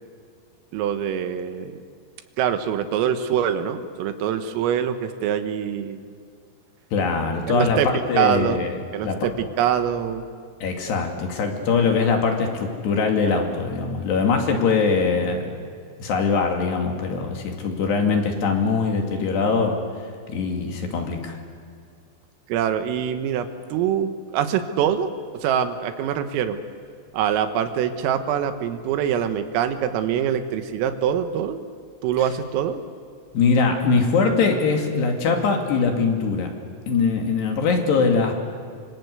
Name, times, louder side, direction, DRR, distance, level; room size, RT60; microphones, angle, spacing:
voice 1, 0.7-1.8 2.4-6.1 7.5-8.6 8.9-10.3 22.5-26.6 27.1-31.6 32.0-32.8, right 9 dB, 85° right, 8 dB, 4.0 m, -24 dB
voice 2, 6.9-8.8 9.0-9.3 10.6-15.5 16.0-19.8 20.3-21.4 33.3-36.5 36.9-38.3, left 4 dB, 60° left, 3 dB, 4.2 m, -22 dB
26.0 x 25.5 x 8.3 m, 2.2 s
omnidirectional pair, 5.8 m